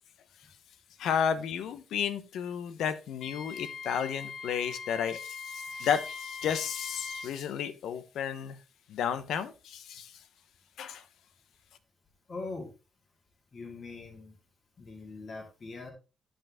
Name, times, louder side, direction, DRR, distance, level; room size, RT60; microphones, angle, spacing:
voice 1, 1.0-8.6 8.9-10.1 10.8-11.0, left 8 dB, 85° left, 1.0 m, -32 dB
Wind instrument woodwind instrument, 3.2-7.3, left 4 dB, 60° left, 1.9 m, -41 dB
voice 2, 12.3-12.7 13.5-14.3 14.8-15.9, left 3 dB, 30° left, 2.3 m, -41 dB
11.5 x 5.4 x 3.6 m
wide cardioid pair, 170°, 0 cm